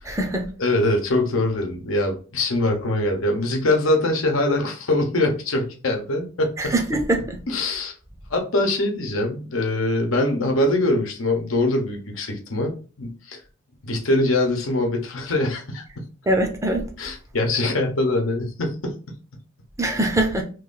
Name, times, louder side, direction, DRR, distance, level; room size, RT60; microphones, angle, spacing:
voice 1, 0.0-0.5 6.6-7.4 16.3-16.9 19.8-20.4, right 1 dB, 15° right, 0.5 m, -22 dB
voice 2, 0.6-6.7 7.5-7.9 8.3-13.4 13.8-16.1 17.0-19.2, left 2 dB, 85° left, 0.9 m, -23 dB
3.0 x 2.5 x 3.7 m
head